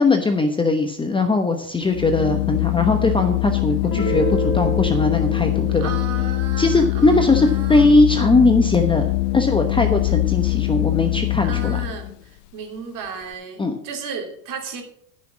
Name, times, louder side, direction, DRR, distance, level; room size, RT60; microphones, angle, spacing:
voice 1, 0.0-6.0 6.6-11.8 13.6-13.8, left 3 dB, 10° left, 5 dB, 1.0 m, -19 dB
Organ, 1.8-12.1, left 20 dB, 70° left, 0.6 m, -23 dB
Guitar, 3.8-9.3, right 1 dB, 45° left, 3.1 m, -31 dB
voice 2, 5.8-8.0 11.4-12.2 12.5-14.8, right 5 dB, 40° right, 3 dB, 3.1 m, -34 dB
14.0 x 6.3 x 6.2 m, 0.68 s
hypercardioid pair, 105°, 48 cm